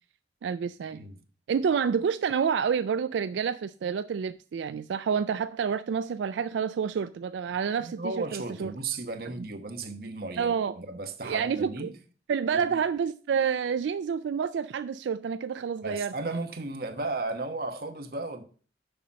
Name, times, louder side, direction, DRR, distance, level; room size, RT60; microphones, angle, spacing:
voice 1, 0.4-1.0 1.5-8.7 10.4-10.8 11.2-11.9 12.3-16.1, right 6 dB, 85° right, 0.3 m, -28 dB
voice 2, 7.8-11.9 12.5-12.7 15.8-18.4, right 3 dB, 55° right, 1.1 m, -35 dB
6.7 x 5.6 x 6.3 m
head